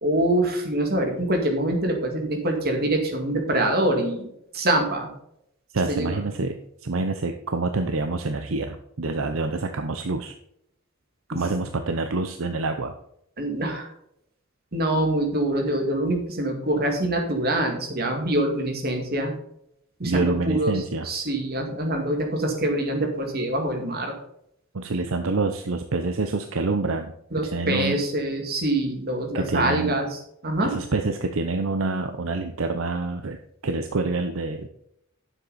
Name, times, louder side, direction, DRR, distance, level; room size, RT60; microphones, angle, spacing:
voice 1, 0.0-4.3 4.5-5.1 5.9-6.2 11.3-11.4 13.4-13.9 14.7-19.3 20.0-24.1 27.3-30.7, right 1 dB, 50° right, 3 dB, 2.2 m, -25 dB
voice 2, 5.7-10.3 11.3-12.9 20.0-21.1 24.7-28.0 29.3-30.0 30.6-33.4 33.6-34.7, right 3 dB, 70° right, 6 dB, 0.7 m, -27 dB
9.8 x 7.4 x 4.1 m, 0.76 s
head